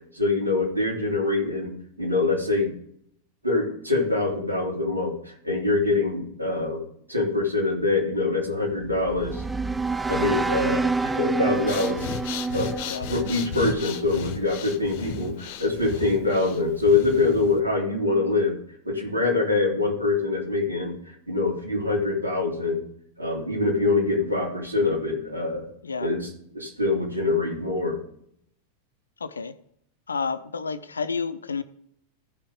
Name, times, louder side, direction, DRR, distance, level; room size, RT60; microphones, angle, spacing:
voice 1, 0.0-1.7 2.0-2.7 3.4-6.8 7.1-9.4 10.1-12.0 12.5-18.6 18.8-22.8 23.2-25.7 26.0-26.3 26.5-28.0, left 3 dB, 85° right, -3 dB, 3.1 m, -24 dB
sound 1, 8.8-14.0, right 3 dB, 5° right, 0.3 m, -28 dB
Breathing, 11.5-17.6, left 6 dB, 50° left, 0.8 m, -35 dB
voice 2, 29.2-29.6 30.1-31.6, left 5 dB, 75° left, 13 dB, 0.5 m, -30 dB
15.0 x 5.6 x 3.7 m, 0.68 s
figure-of-eight pair, 90°, 0 cm